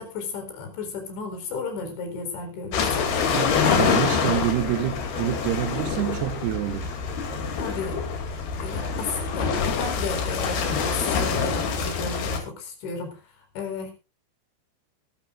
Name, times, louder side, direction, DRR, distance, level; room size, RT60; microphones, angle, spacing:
voice 1, 0.0-3.1 7.4-8.0 8.6-13.2 13.6-13.9, left 4 dB, 80° left, 6.3 m, -33 dB
sound 1, 2.7-12.4, left 6 dB, 65° left, 4.3 m, -26 dB
sound 2, 2.9-7.6, right 1 dB, 45° right, 4.0 m, -43 dB
voice 2, 3.3-6.9, right 14 dB, 80° right, 2.7 m, -27 dB
22.0 x 12.0 x 2.5 m
omnidirectional pair, 5.1 m